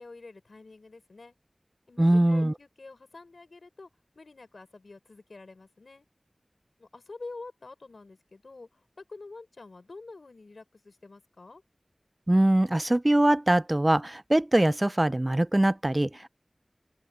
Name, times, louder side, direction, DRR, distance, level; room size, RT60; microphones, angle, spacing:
voice 1, 0.0-1.4 1.9-3.9 4.2-6.1 6.8-11.6, left 3 dB, 90° left, 4.1 m, -47 dB
voice 2, 2.0-2.5 12.3-16.3, right 1 dB, 30° right, 0.4 m, -22 dB
open air
wide cardioid pair, 50°, 0 cm